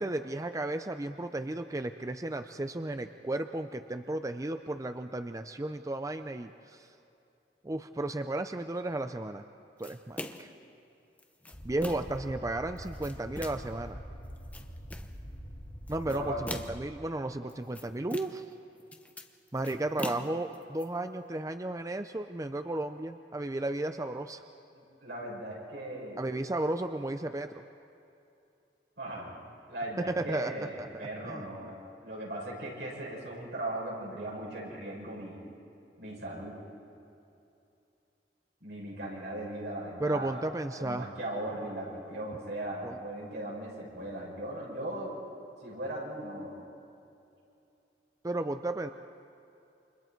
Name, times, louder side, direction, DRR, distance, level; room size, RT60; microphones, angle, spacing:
voice 1, 0.0-6.9 7.6-9.4 9.8-10.5 11.6-14.0 15.9-16.3 16.7-18.4 19.5-24.4 26.2-27.6 30.0-30.5 30.8-31.5 40.0-41.1 42.8-43.0 48.2-48.9, right 2 dB, 20° right, 8 dB, 0.5 m, -34 dB
sound 1, 9.8-10.6 11.2-12.2 12.8-13.7 14.3-15.2 15.9-16.9 17.5-18.5 18.8-20.8, left 1 dB, 10° left, 0.9 m, -42 dB
sound 2, 11.5-16.8, equal, 35° left, 2.2 m, -44 dB
voice 2, 16.0-16.4 24.7-26.2 29.0-29.3 29.7-31.8 32.0-35.4 36.0-36.6 38.6-40.4 40.8-45.1 45.6-46.5, right 1 dB, 80° right, -4 dB, 7.3 m, -38 dB
29.0 x 26.5 x 4.6 m, 2.7 s
head